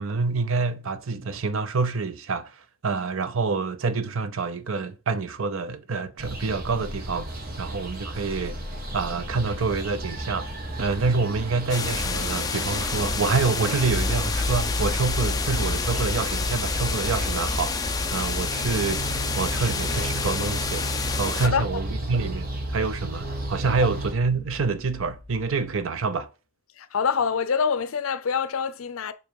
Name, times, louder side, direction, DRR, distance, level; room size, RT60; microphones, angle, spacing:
voice 1, 0.0-7.3 7.6-8.6 8.9-10.5 10.8-17.8 18.1-26.3, right 4 dB, 70° right, 0.6 m, -27 dB
sound 1, 6.2-24.1, right 1 dB, 40° right, 1.1 m, -33 dB
sound 2, 11.7-21.5, left 5 dB, 15° left, 0.5 m, -30 dB
sound 3, 13.8-25.8, left 1 dB, 10° right, 2.0 m, -33 dB
voice 2, 26.8-29.1, left 6 dB, 75° left, 0.6 m, -25 dB
6.9 x 3.0 x 4.6 m
head